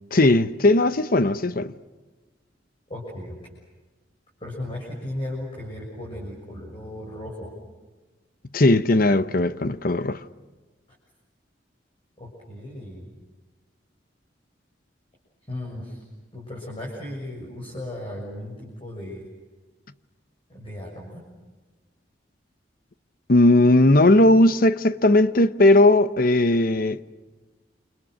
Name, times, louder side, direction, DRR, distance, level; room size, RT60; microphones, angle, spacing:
voice 1, 0.1-1.7 8.5-10.2 23.3-27.0, left 2 dB, 50° left, 1.0 m, -17 dB
voice 2, 2.9-3.4 4.4-7.5 12.2-13.1 15.5-16.0 16.3-19.2 20.5-21.2, left 1 dB, 30° left, 6.5 m, -36 dB
29.0 x 27.0 x 6.5 m
head